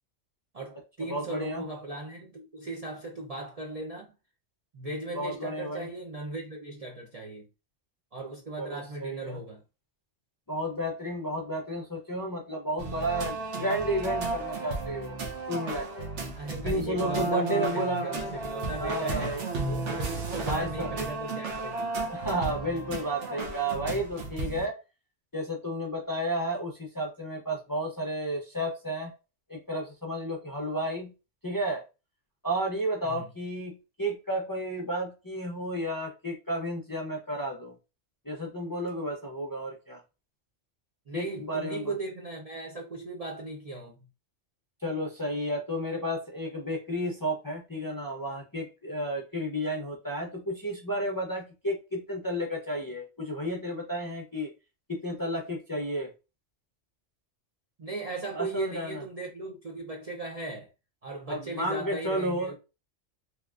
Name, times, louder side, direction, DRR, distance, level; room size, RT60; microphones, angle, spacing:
voice 1, 0.5-4.1 4.7-7.5 8.1-9.6 16.3-21.9 33.0-33.2 41.1-44.1 57.8-60.7 61.0-62.6, right 2 dB, 45° right, 0.5 m, -38 dB
voice 2, 1.1-1.6 5.1-5.9 8.6-9.4 10.5-15.2 15.5-16.1 16.6-18.2 18.8-19.4 20.4-20.9 22.1-24.8 25.3-29.1 29.5-31.1 31.4-31.8 32.4-37.7 38.3-40.0 41.1-41.9 44.8-54.5 54.9-56.1 58.4-59.0 61.3-62.5, equal, 25° left, 0.4 m, -32 dB
sound 1, 12.8-24.7, right 3 dB, 80° right, 1.1 m, -33 dB
3.2 x 2.9 x 2.4 m
omnidirectional pair, 1.2 m